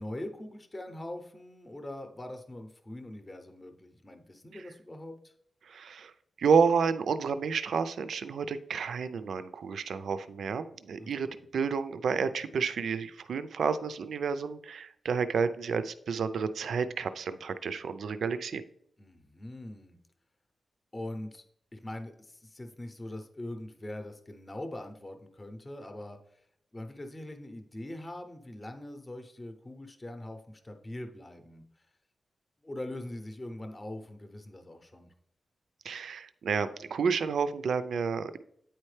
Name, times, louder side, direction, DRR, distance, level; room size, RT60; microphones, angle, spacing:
voice 1, 0.0-5.3 11.0-11.3 19.0-20.0 20.9-21.4 21.7-26.4 26.7-31.9 32.6-35.1, left 1 dB, 20° left, 6 dB, 0.7 m, -42 dB
voice 2, 5.6-6.1 6.4-18.6 35.8-38.4, right 5 dB, 75° right, 12 dB, 0.4 m, -30 dB
9.0 x 4.3 x 3.2 m, 0.68 s
wide cardioid pair, 140°, 0 cm